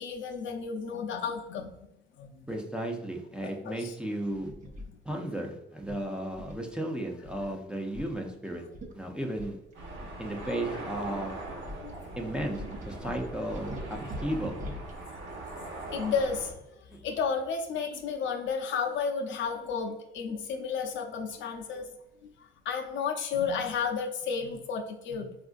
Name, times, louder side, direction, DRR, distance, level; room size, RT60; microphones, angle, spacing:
voice 1, 0.0-1.7 2.2-2.5 3.4-3.9 11.8-12.0 13.0-13.1 15.9-16.5 17.0-21.9 22.2-25.4, left 5 dB, 75° left, 3 dB, 0.6 m, -32 dB
voice 2, 2.5-4.5 5.0-8.6 8.9-9.6 10.2-11.4 12.2-14.6 16.9-17.0, right 1 dB, 5° right, 1 dB, 0.5 m, -34 dB
sound 1, 4.3-4.9 5.8-6.7 7.2-7.5 7.9-8.2 8.5-8.6 8.7-8.9 9.4-11.2 11.7-15.0, equal, 40° right, 0.8 m, -42 dB
sound 2, 9.7-16.5, right 2 dB, 70° right, 0.9 m, -41 dB
3.5 x 2.5 x 2.4 m, 0.89 s
cardioid pair, 90°, 20 cm